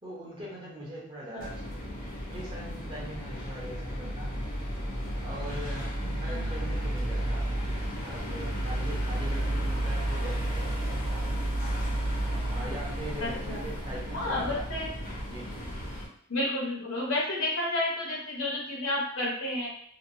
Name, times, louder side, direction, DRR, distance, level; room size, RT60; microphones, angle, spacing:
voice 1, 0.0-4.4 5.2-11.2 12.5-14.7 15.3-15.6, equal, 25° right, -6 dB, 0.9 m, -42 dB
sound 1, 1.4-16.1, right 1 dB, 40° left, 0.7 m, -32 dB
voice 2, 13.2-13.6 14.1-14.9 16.3-19.7, left 1 dB, 65° left, -4 dB, 0.9 m, -31 dB
2.9 x 2.3 x 2.7 m, 0.65 s
head